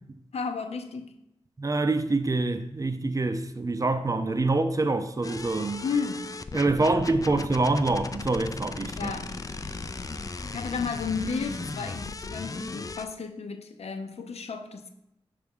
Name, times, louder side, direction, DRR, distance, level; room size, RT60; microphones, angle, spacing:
voice 1, 0.3-1.1 5.8-6.3 9.0-9.3 10.5-14.9, left 5 dB, 80° left, 0.6 m, -33 dB
voice 2, 1.6-5.8 6.5-9.1, right 2 dB, 35° right, 0.5 m, -26 dB
sound 1, 5.2-13.1, left 3 dB, 35° left, 0.4 m, -37 dB
5.7 x 3.4 x 5.4 m
cardioid pair, 55°, 11 cm